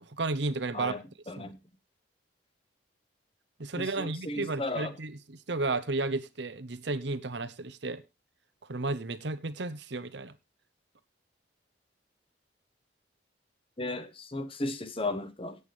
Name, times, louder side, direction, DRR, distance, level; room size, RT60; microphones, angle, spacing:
voice 1, 0.1-0.9 1.4-1.5 3.6-8.0 8.7-10.3, right 3 dB, 70° right, 1.0 m, -33 dB
voice 2, 1.3-1.6 3.8-4.9 13.8-15.6, left 2 dB, 30° left, 1.0 m, -35 dB
17.0 x 8.2 x 3.3 m
head